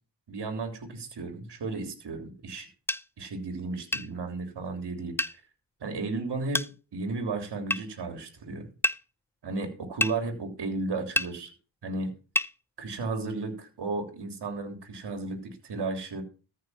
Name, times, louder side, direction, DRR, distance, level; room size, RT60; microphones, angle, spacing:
voice 1, 0.3-2.7 3.2-5.2 5.8-8.7 9.4-11.5 11.8-12.1 12.8-16.2, right 3 dB, 65° right, 5 dB, 3.2 m, -34 dB
sound 1, 2.9-3.0 3.9-4.1 5.2-5.4 6.5-6.7 7.7-7.8 8.8-9.0 10.0-10.2 11.2-11.3 12.4-12.5, left 1 dB, 5° left, 0.5 m, -27 dB
14.0 x 6.2 x 5.6 m, 0.35 s
cardioid pair, 60°, 45 cm